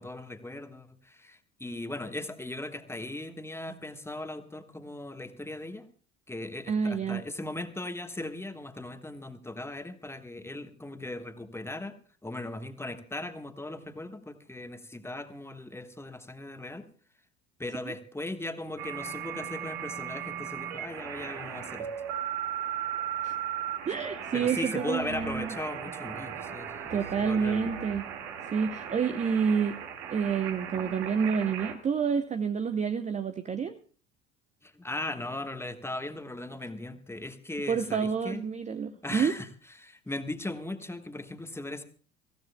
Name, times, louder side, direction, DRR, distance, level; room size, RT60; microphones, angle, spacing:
voice 1, 0.0-5.9 6.3-11.9 12.2-16.9 17.6-21.9 24.3-26.8 27.2-27.6 34.6-38.4 39.0-39.5 39.8-41.8, left 2 dB, 5° left, 8 dB, 1.3 m, -38 dB
voice 2, 6.7-7.2 23.2-23.4 23.9-25.5 26.9-28.1 28.5-29.8 30.1-33.8 37.7-39.3, right 6 dB, 20° right, 10 dB, 0.6 m, -28 dB
sound 1, 18.8-31.7, right 9 dB, 60° right, 2.1 m, -37 dB
24.5 x 15.5 x 2.2 m, 0.41 s
figure-of-eight pair, 70°, 39 cm